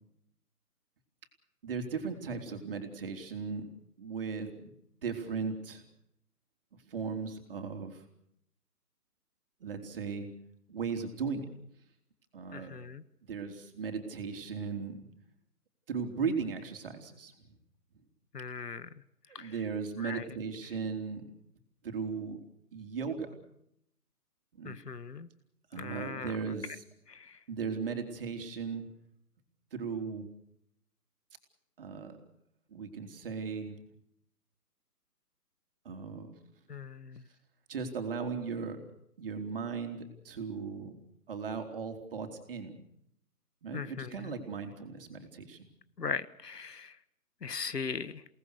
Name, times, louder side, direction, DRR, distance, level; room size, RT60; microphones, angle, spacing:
voice 1, 1.6-3.7 4.0-4.7 5.0-5.8 6.9-8.0 9.6-10.3 10.7-11.5 12.3-12.8 13.2-15.1 15.9-17.3 19.4-21.3 21.8-22.4 22.7-23.3 24.6-24.8 25.7-26.8 27.5-28.9 29.7-30.3 31.8-32.2 32.7-33.7 35.9-36.3 37.7-38.8 39.2-41.0 41.3-42.8 43.6-45.7, right 5 dB, 35° right, 5 dB, 3.6 m, -37 dB
voice 2, 12.5-13.0 18.3-18.9 19.4-19.5 20.0-20.2 24.6-25.3 25.8-26.3 27.1-27.2 36.7-37.2 43.7-44.3 46.0-46.9 47.4-48.1, left 5 dB, 80° left, 16 dB, 1.6 m, -39 dB
29.0 x 19.0 x 6.6 m, 0.76 s
hypercardioid pair, 160°, 47 cm